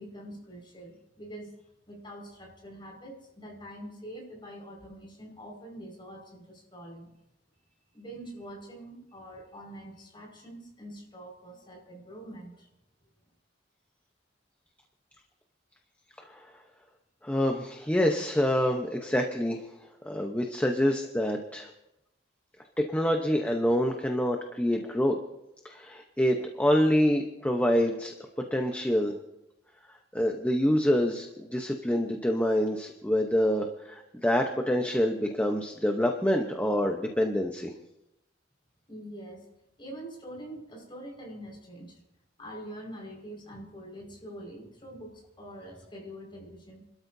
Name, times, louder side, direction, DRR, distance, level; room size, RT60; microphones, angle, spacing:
voice 1, 0.0-1.5 1.9-7.1 7.9-12.7 38.9-39.5 39.8-42.0 42.4-46.9, right 1 dB, 25° left, -1 dB, 5.2 m, -44 dB
voice 2, 17.2-19.7 20.0-21.7 22.8-25.2 25.6-28.1 28.5-29.2 30.1-37.7, equal, 10° left, 2 dB, 0.9 m, -26 dB
29.5 x 13.0 x 2.7 m, 0.87 s
head